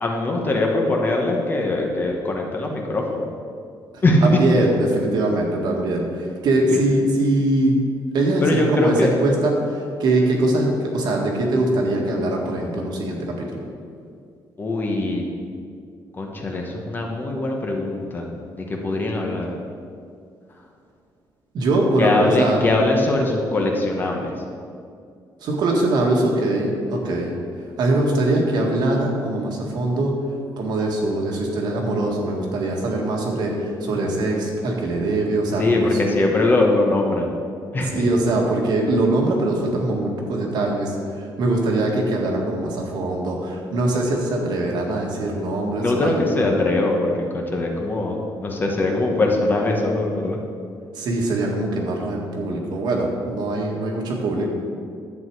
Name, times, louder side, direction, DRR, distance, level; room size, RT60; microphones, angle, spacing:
voice 1, 0.0-3.3 4.0-4.4 6.7-6.8 8.4-9.1 14.6-15.2 16.2-18.2 18.5-19.5 22.0-24.3 35.6-37.3 37.7-38.1 45.8-50.4, left 2 dB, 25° left, 1 dB, 1.2 m, -21 dB
voice 2, 3.9-7.8 8.1-13.6 21.5-22.6 25.4-27.3 27.8-30.1 30.6-36.0 37.9-46.5 51.0-54.5, right 2 dB, 60° right, 0 dB, 1.7 m, -22 dB
11.0 x 7.9 x 4.7 m, 2.3 s
cardioid pair, 165°, 8 cm